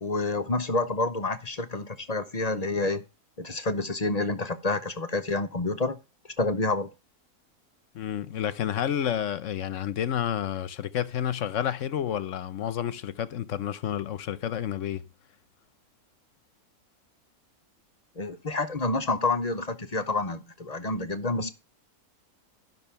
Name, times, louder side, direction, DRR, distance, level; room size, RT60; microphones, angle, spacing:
voice 1, 0.0-3.0 3.4-6.0 6.4-6.9 18.2-21.5, left 3 dB, 40° left, 0.6 m, -28 dB
voice 2, 7.9-15.0, left 10 dB, 60° left, 1.0 m, -30 dB
12.5 x 6.0 x 5.7 m
omnidirectional pair, 1.6 m